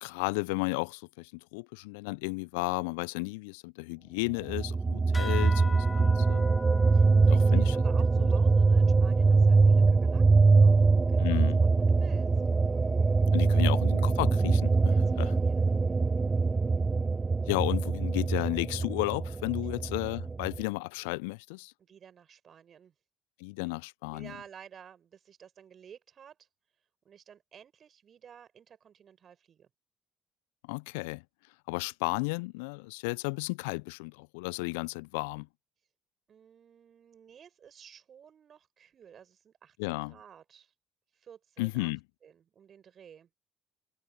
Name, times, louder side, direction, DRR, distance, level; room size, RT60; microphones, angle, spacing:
voice 1, 0.0-6.5 7.3-7.7 11.2-11.6 13.3-15.4 17.5-21.7 23.4-24.3 30.6-31.2 31.7-35.5 39.8-40.2 41.6-42.0, left 28 dB, 75° left, 0.7 m, -33 dB
sound 1, 4.5-20.6, right 4 dB, 25° right, 0.6 m, -23 dB
sound 2, 5.1-10.1, left 3 dB, 25° left, 1.8 m, -44 dB
voice 2, 6.9-11.5 12.0-12.3 13.5-13.7 14.9-15.6 21.8-22.9 24.1-26.5 27.0-29.7 36.3-40.7 41.1-41.9 42.2-43.3, right 8 dB, 50° right, 6.8 m, -53 dB
figure-of-eight pair, 45°, 0 cm